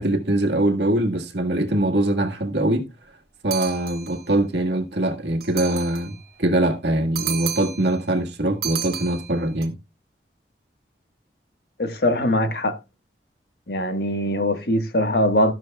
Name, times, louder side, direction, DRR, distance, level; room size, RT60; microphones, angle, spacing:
voice 1, 0.0-2.9 3.4-9.7, right 1 dB, 75° right, 1.8 m, -22 dB
sound 1, 3.5-4.3 5.4-6.2 7.1-7.9 8.6-9.6, right 10 dB, 55° right, 1.5 m, -32 dB
voice 2, 11.8-12.8 13.7-15.5, left 1 dB, 60° left, 1.5 m, -21 dB
12.5 x 11.5 x 2.3 m
head